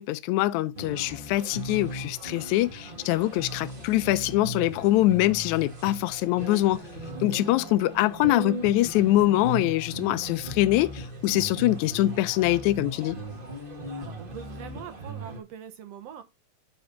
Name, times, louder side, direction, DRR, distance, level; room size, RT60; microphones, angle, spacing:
voice 1, 0.0-6.8 7.2-13.2, left 16 dB, 80° left, 1.7 m, -24 dB
sound 1, 0.7-15.4, right 1 dB, 35° right, 0.8 m, -38 dB
voice 2, 14.0-16.2, right 9 dB, 65° right, 1.8 m, -42 dB
9.6 x 4.1 x 5.8 m
omnidirectional pair, 3.8 m